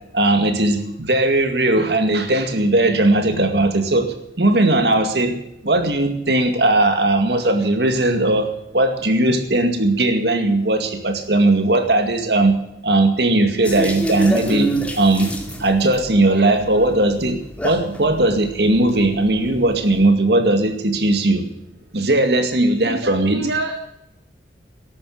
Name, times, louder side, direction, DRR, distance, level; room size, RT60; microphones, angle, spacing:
voice 1, 0.1-5.3 5.6-12.6 12.8-15.3 15.6-17.4 17.6-21.4 21.9-23.4, right 2 dB, 65° right, 6 dB, 2.2 m, -18 dB
sound 1, 13.6-20.0, right 1 dB, 10° left, 2.2 m, -29 dB
voice 2, 22.8-23.7, right 2 dB, 80° right, 4 dB, 1.7 m, -26 dB
13.0 x 11.5 x 7.8 m, 0.81 s
head